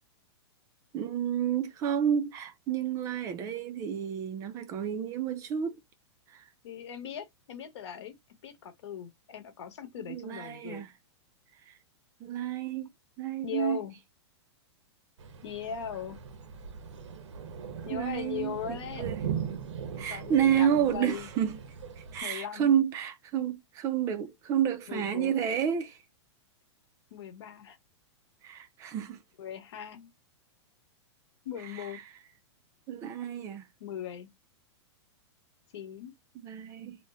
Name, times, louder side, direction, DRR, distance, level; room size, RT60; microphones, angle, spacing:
voice 1, 0.9-5.7 6.3-6.5 10.1-10.9 11.7-11.8 12.2-12.9 13.2-13.8 17.9-19.2 20.0-21.6 22.1-26.0 28.4-29.2 31.7-32.0 32.9-33.6 36.4-37.0, right 9 dB, 20° right, 0.3 m, -30 dB
voice 2, 6.6-8.1 8.4-10.9 13.4-14.0 15.4-16.2 17.8-19.1 20.1-21.3 22.2-22.7 24.9-25.5 27.1-27.8 29.4-30.1 31.4-32.0 33.8-34.3 35.7-36.1, left 8 dB, 70° left, 1.0 m, -39 dB
sound 1, 15.2-22.2, right 7 dB, 85° right, 0.7 m, -39 dB
2.7 x 2.1 x 3.4 m
hypercardioid pair, 150°, 15 cm